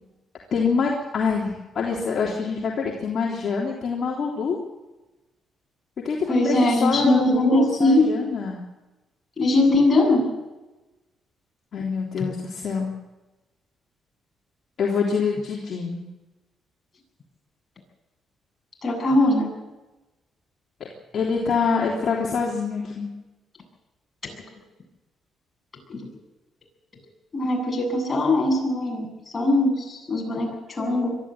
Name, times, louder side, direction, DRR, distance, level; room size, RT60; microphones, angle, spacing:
voice 1, 0.5-4.6 6.0-8.6 11.7-12.9 14.8-16.0 21.1-23.1, left 5 dB, 55° left, -2 dB, 3.4 m, -25 dB
voice 2, 6.3-8.1 9.4-10.3 12.2-12.3 18.8-19.5 25.9-26.0 27.3-29.1 29.3-31.1, left 2 dB, 35° left, 1 dB, 7.9 m, -21 dB
22.5 x 13.5 x 9.1 m, 1.1 s
cardioid pair, 90°, 0 cm